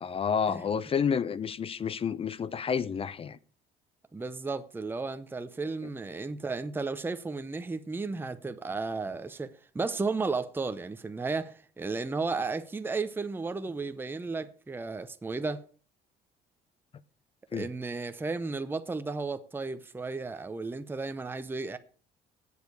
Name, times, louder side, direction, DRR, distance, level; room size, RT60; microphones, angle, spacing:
voice 1, 0.0-3.4 17.5-17.7, left 7 dB, 35° left, 0.6 m, -30 dB
voice 2, 4.1-15.6 17.5-21.8, right 3 dB, 10° right, 0.7 m, -34 dB
8.4 x 6.7 x 8.3 m
cardioid pair, 110°, 17 cm